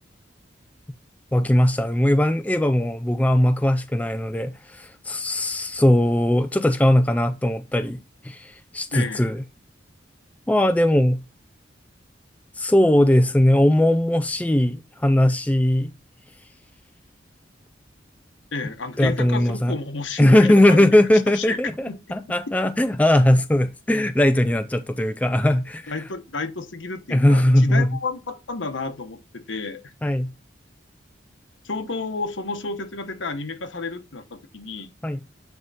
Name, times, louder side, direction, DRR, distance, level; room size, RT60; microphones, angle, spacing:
voice 1, 1.3-9.4 10.5-11.2 12.6-15.9 19.0-19.7 20.2-25.9 27.1-28.0 30.0-30.3 35.0-35.2, left 1 dB, 10° left, 0.3 m, -19 dB
voice 2, 8.9-9.3 18.5-20.9 21.3-21.6 21.8-22.2 25.9-29.9 31.6-34.9, left 3 dB, 80° left, 1.1 m, -31 dB
9.5 x 3.6 x 4.1 m
head